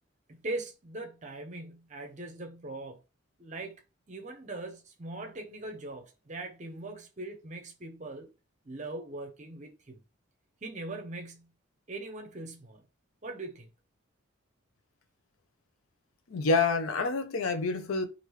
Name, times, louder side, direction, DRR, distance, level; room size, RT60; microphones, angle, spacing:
voice 1, 0.3-3.0 3.4-3.8 4.1-8.3 8.7-10.0 10.6-11.5 11.9-12.8 13.2-13.7, right 2 dB, 35° right, 0.6 m, -41 dB
voice 2, 16.3-18.0, left 4 dB, 90° left, 0.6 m, -27 dB
3.1 x 2.5 x 3.1 m
head